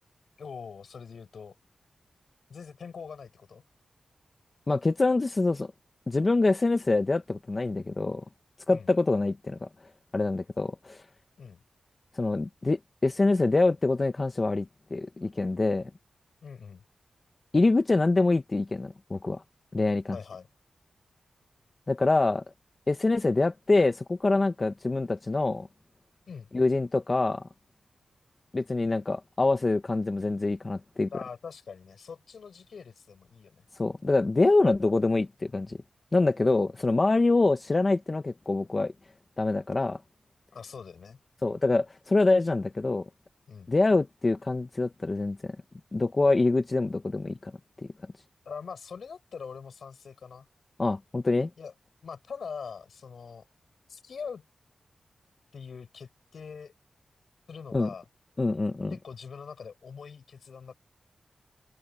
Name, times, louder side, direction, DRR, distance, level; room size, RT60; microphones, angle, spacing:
voice 1, 0.4-1.5 2.5-3.6 8.7-8.9 11.4-11.6 16.4-16.8 20.1-20.5 26.3-26.5 31.1-33.6 40.5-41.2 43.5-43.7 48.5-50.5 51.6-51.7 52.0-53.5 53.9-54.4 55.5-56.7 57.5-58.0 58.9-60.7, left 6 dB, 75° left, 7.6 m, -43 dB
voice 2, 4.7-5.7 6.1-8.2 8.7-9.7 10.1-11.0 12.1-15.9 17.5-19.4 19.7-20.2 21.9-22.4 22.9-25.7 26.5-27.4 28.5-31.1 33.8-35.8 36.1-38.9 39.4-40.0 41.4-43.0 43.7-45.6 45.9-47.5 50.8-51.5 57.7-57.9 58.4-58.9, left 3 dB, 35° left, 1.1 m, -25 dB
open air
wide cardioid pair, 90°, 0 cm